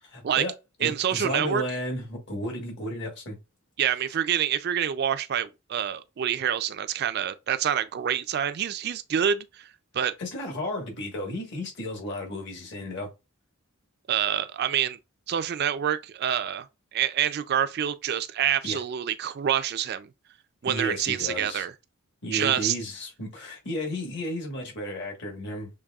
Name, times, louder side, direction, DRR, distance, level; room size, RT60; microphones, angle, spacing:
voice 1, 0.0-0.5 0.8-3.4 10.2-13.1 18.6-18.8 20.6-21.6 22.2-25.7, left 1 dB, 55° left, 1.4 m, -33 dB
voice 2, 0.8-1.6 3.8-9.7 9.9-10.1 14.1-15.0 15.3-16.7 16.9-20.1 20.6-21.7 22.3-22.8, right 9 dB, 50° right, 0.3 m, -27 dB
6.5 x 3.3 x 2.3 m
head